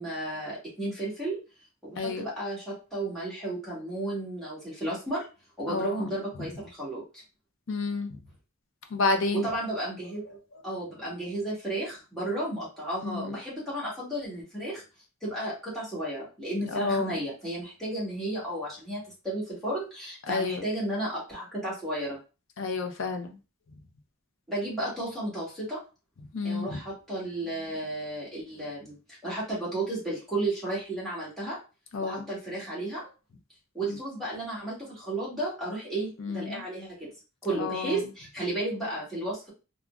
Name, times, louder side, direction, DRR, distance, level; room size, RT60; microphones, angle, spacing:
voice 1, 0.0-1.4 1.8-5.3 5.6-7.2 9.3-10.4 10.6-14.8 15.2-22.2 24.5-25.8 26.4-31.6 32.0-33.1 33.7-37.1 37.4-39.5, right 1 dB, ahead, -7 dB, 1.3 m, -33 dB
voice 2, 5.7-6.1 7.7-8.2 8.9-9.5 13.0-13.4 16.7-17.2 20.3-20.6 22.6-23.4 26.3-26.8 31.9-32.2 33.8-34.0 36.2-36.6 37.5-38.0, left 3 dB, 60° left, 5 dB, 0.5 m, -30 dB
3.6 x 2.1 x 2.3 m, 0.32 s
head